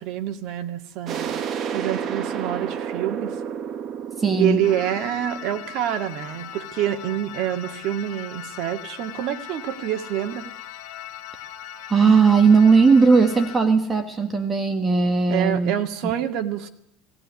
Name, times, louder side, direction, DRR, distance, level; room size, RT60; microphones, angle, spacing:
voice 1, 0.0-1.4 1.7-3.3 4.3-10.5 15.3-16.7, right 11 dB, 50° right, 6 dB, 2.2 m, -27 dB
sound 1, 1.1-6.5, right 7 dB, 35° right, 1.6 m, -31 dB
voice 2, 4.2-4.6 11.9-15.7 16.0-16.1, right 5 dB, 15° right, 7 dB, 1.7 m, -17 dB
sound 2, 4.6-13.6, left 10 dB, 70° left, 2.1 m, -39 dB
18.0 x 18.0 x 9.8 m, 0.71 s
cardioid pair, 165°, 0 cm